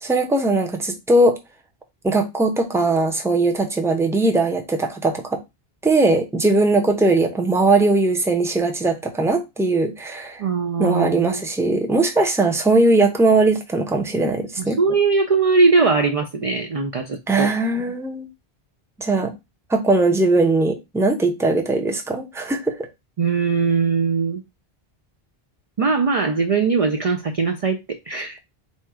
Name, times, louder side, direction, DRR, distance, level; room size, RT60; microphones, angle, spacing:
voice 1, 0.0-1.4 2.0-5.4 5.8-10.4 10.8-14.8 17.3-18.3 19.0-19.3 19.7-22.9, right 2 dB, 5° right, 0.6 m, -19 dB
voice 2, 10.4-11.4 14.6-17.5 23.2-24.4 25.8-27.8 28.1-28.4, right 4 dB, 50° right, 0.5 m, -20 dB
4.3 x 2.3 x 4.6 m
omnidirectional pair, 1.0 m